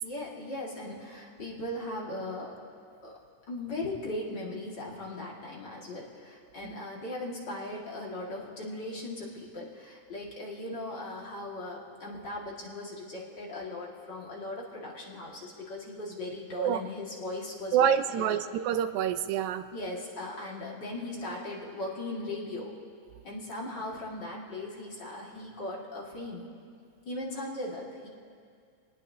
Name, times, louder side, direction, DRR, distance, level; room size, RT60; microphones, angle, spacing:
voice 1, 0.0-2.6 3.0-3.1 3.5-18.4 19.7-22.7 23.2-26.5 27.1-28.1, left 2 dB, 40° left, -5 dB, 2.5 m, -38 dB
voice 2, 17.7-19.7, right 9 dB, 85° right, 11 dB, 2.0 m, -27 dB
26.5 x 19.5 x 2.8 m, 2.2 s
omnidirectional pair, 3.4 m